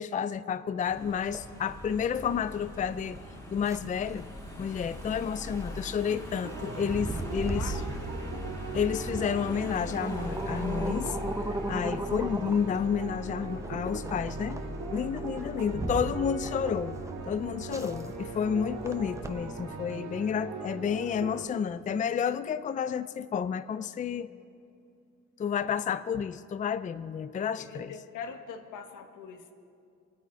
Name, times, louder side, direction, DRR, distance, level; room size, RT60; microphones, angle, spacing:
voice 1, 0.0-3.2 3.5-4.3 4.6-7.8 8.7-11.2 11.5-14.7 14.9-17.0 17.2-24.3 25.4-27.9, left 7 dB, 25° left, 14 dB, 0.4 m, -30 dB
Car passing by / Engine, 0.9-19.5, equal, 10° left, 2.2 m, -42 dB
sound 1, 1.1-19.9, right 2 dB, 10° right, 0.8 m, -39 dB
sound 2, 6.4-21.4, right 3 dB, 75° right, 2.3 m, -40 dB
voice 2, 7.3-8.5 27.3-29.5, left 6 dB, 85° left, 6 dB, 1.3 m, -44 dB
24.5 x 9.2 x 4.7 m, 2.5 s
cardioid pair, 90°, 30 cm